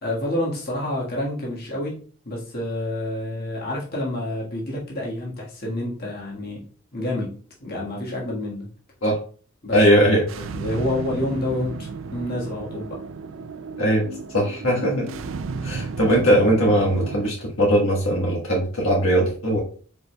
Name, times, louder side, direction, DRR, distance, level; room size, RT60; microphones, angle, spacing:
voice 1, 0.0-2.0 2.2-6.6 6.9-7.3 7.6-8.7 9.6-13.0, left 1 dB, 50° left, -3 dB, 1.6 m, -28 dB
voice 2, 9.7-10.3 13.8-14.1 14.3-15.1 15.6-19.6, equal, 80° left, -2 dB, 1.4 m, -19 dB
sound 1, 10.3-17.3, right 4 dB, 65° right, 0.4 m, -33 dB
4.9 x 4.7 x 2.3 m, 0.41 s
head